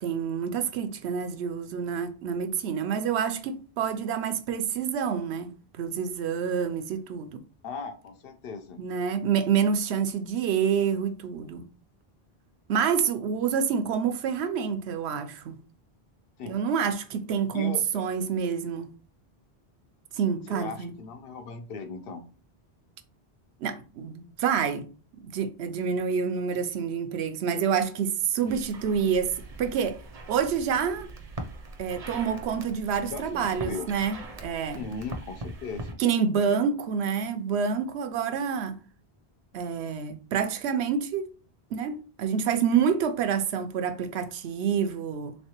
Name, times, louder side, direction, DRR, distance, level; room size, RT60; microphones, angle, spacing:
voice 1, 0.0-7.4 8.8-11.7 12.7-15.6 16.5-18.9 20.1-20.9 23.6-24.9 25.2-30.0 30.3-31.1 31.8-34.8 36.0-38.7 39.5-41.3 41.7-45.4, right 7 dB, 85° right, 0.8 m, -27 dB
voice 2, 7.6-8.8 16.4-16.6 17.5-18.0 20.5-22.3 28.4-28.6 33.1-33.9 34.7-35.9, left 4 dB, 65° left, 0.8 m, -38 dB
sound 1, 28.5-35.9, right 2 dB, 45° right, 0.6 m, -41 dB
3.6 x 3.2 x 2.9 m
omnidirectional pair, 1.1 m